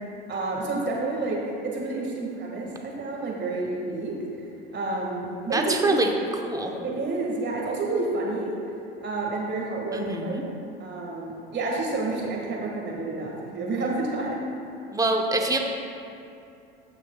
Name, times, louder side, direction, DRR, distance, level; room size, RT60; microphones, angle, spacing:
voice 1, 0.3-4.2 4.7-5.9 6.8-8.6 9.0-10.4 10.8-14.4, right 2 dB, 40° right, -2 dB, 2.1 m, -29 dB
voice 2, 5.5-6.1 6.4-6.7 9.9-10.4 14.9-15.6, right 2 dB, 10° right, 2 dB, 1.0 m, -25 dB
15.0 x 6.3 x 2.4 m, 2.6 s
hypercardioid pair, 80°, 29 cm